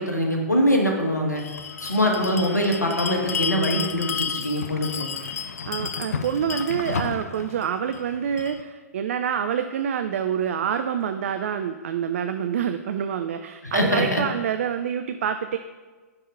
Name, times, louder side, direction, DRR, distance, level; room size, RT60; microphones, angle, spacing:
voice 1, 0.0-1.4 1.8-5.1 13.6-14.2, equal, 85° left, 1 dB, 1.4 m, -23 dB
Bell, 1.4-8.6, left 6 dB, 65° left, 0.6 m, -31 dB
voice 2, 5.6-15.6, right 8 dB, 55° right, 8 dB, 0.4 m, -27 dB
9.6 x 3.7 x 5.4 m, 1.3 s
figure-of-eight pair, 115°, 9 cm